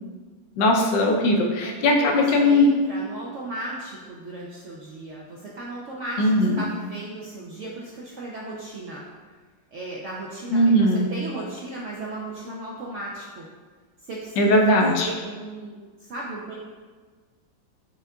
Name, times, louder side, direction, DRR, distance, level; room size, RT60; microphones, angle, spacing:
voice 1, 0.6-2.7 6.2-6.7 10.5-11.1 14.4-15.1, left 1 dB, 85° left, 1 dB, 1.3 m, -19 dB
voice 2, 1.6-9.0 9.7-13.5 14.0-16.6, right 2 dB, 70° right, -5 dB, 0.6 m, -36 dB
6.4 x 3.5 x 2.3 m, 1.5 s
omnidirectional pair, 1.9 m